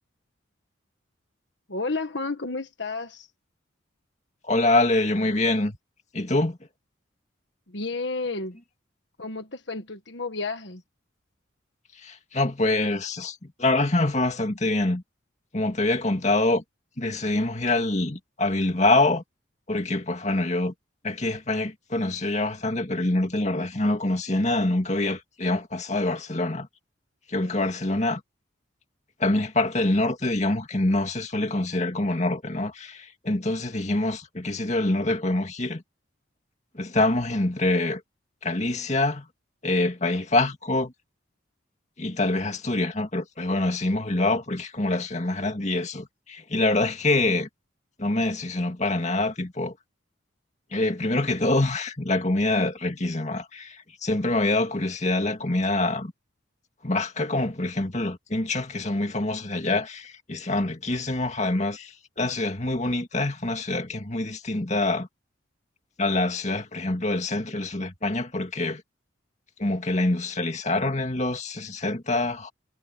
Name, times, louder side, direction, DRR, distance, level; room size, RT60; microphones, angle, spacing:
voice 1, 1.7-3.3 7.7-8.5 9.2-10.8 27.4-27.5, left 3 dB, 65° left, 1.6 m, -31 dB
voice 2, 4.4-5.8 6.1-6.6 12.0-15.0 15.5-16.6 17.0-19.2 19.7-20.7 21.0-26.7 27.3-28.2 29.2-35.8 36.7-38.0 38.4-39.3 39.6-40.9 42.0-47.5 48.0-49.8 50.7-56.1 56.8-65.1 66.0-68.8 69.6-72.5, left 2 dB, 35° left, 2.2 m, -25 dB
head